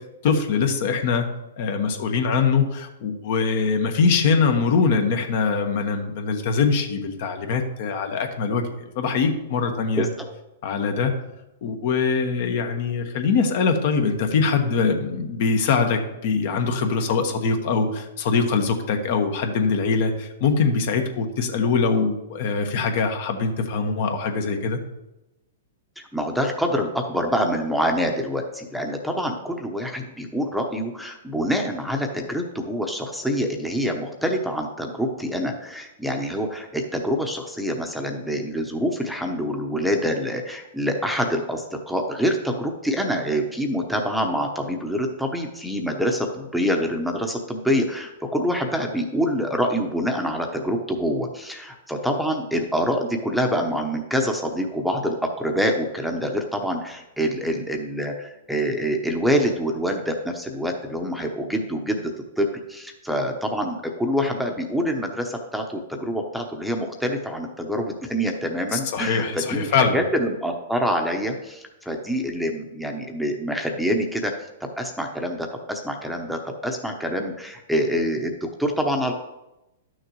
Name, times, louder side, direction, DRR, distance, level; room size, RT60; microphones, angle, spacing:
voice 1, 0.2-1.2 1.6-10.1 10.6-11.1 11.6-24.8 68.7-70.0, left 5 dB, 55° left, 5 dB, 1.3 m, -23 dB
voice 2, 10.0-10.3 26.0-74.3 74.6-79.1, equal, ahead, 3 dB, 0.9 m, -26 dB
11.5 x 6.5 x 3.1 m, 0.95 s
hypercardioid pair, 130°, 0 cm